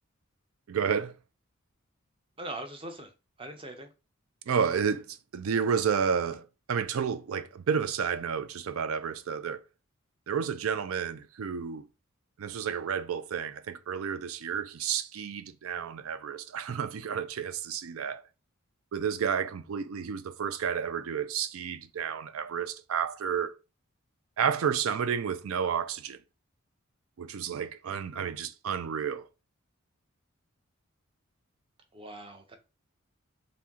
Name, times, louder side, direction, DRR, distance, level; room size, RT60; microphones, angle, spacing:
voice 1, 0.7-1.1 4.5-9.6 10.3-11.8 12.4-18.2 18.9-23.6 24.4-26.2 27.2-29.3, right 7 dB, 80° right, 0.4 m, -31 dB
voice 2, 2.4-3.1 3.4-3.9 31.9-32.6, right 1 dB, 25° right, 0.7 m, -41 dB
4.3 x 2.6 x 3.6 m
head